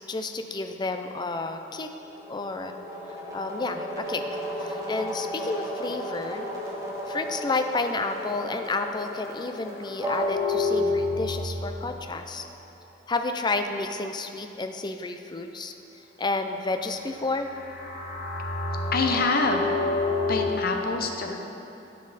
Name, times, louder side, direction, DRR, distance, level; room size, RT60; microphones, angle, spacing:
voice 1, 0.1-1.9 2.3-2.7 3.3-4.2 4.6-6.5 7.1-12.4 13.1-17.5, left 3 dB, 25° left, 6 dB, 0.4 m, -31 dB
sound 1, 2.1-12.2 17.3-20.5, left 2 dB, 15° right, 1.3 m, -31 dB
voice 2, 18.9-19.7 20.3-21.4, left 3 dB, 50° left, 3 dB, 0.7 m, -25 dB
12.5 x 5.4 x 4.1 m, 3.0 s
head